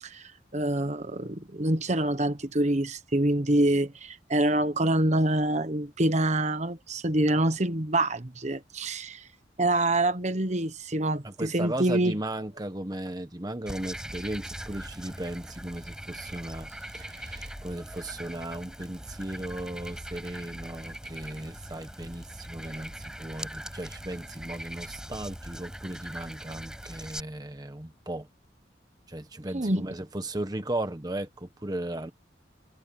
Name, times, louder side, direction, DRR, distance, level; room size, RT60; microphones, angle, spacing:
voice 1, 0.0-9.2 9.6-12.1 29.5-29.9, right 1 dB, 40° right, 1.2 m, -26 dB
voice 2, 11.2-28.3 29.1-32.1, right 1 dB, 20° right, 1.1 m, -36 dB
Frog, 13.7-27.2, equal, 5° right, 5.7 m, -41 dB
head